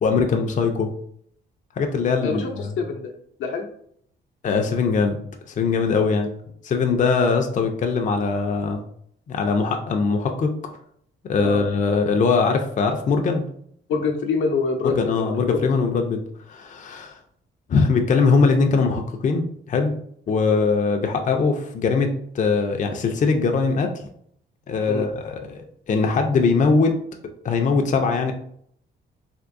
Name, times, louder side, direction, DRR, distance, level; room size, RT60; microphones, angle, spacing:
voice 1, 0.0-0.9 1.8-2.7 4.4-5.2 5.5-6.3 6.6-8.8 9.3-10.5 11.3-13.5 14.8-16.2 16.5-17.1 17.7-19.9 20.3-23.9 24.7-25.6 25.9-27.0 27.4-28.3, left 4 dB, 40° left, 4 dB, 0.5 m, -21 dB
voice 2, 2.2-3.1 3.4-3.7 11.4-11.6 13.9-15.0 15.3-15.4 24.9-25.1, left 4 dB, 80° left, 2 dB, 0.7 m, -25 dB
3.5 x 2.5 x 2.5 m, 0.66 s
cardioid pair, 90°, 20 cm